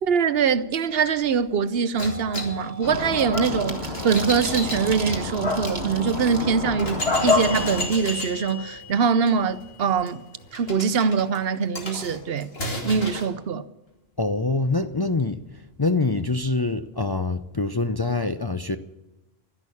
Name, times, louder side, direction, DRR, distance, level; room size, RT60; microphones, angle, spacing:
voice 1, 0.0-10.2 10.5-12.5 12.8-13.7, right 6 dB, 70° right, 0.9 m, -23 dB
sound 1, 0.9-1.1 1.5-7.9 8.3-8.4 8.7-9.6 9.9-10.1 10.4-10.7, right 3 dB, 50° right, 1.8 m, -39 dB
sound 2, 2.0-5.8 6.3-6.4 6.8-13.3, left 1 dB, 70° left, 2.9 m, -34 dB
sound 3, 2.8-7.8, left 3 dB, 90° left, 3.0 m, -27 dB
voice 2, 14.2-18.8, left 3 dB, 30° left, 0.5 m, -25 dB
13.0 x 11.0 x 8.4 m
omnidirectional pair, 1.1 m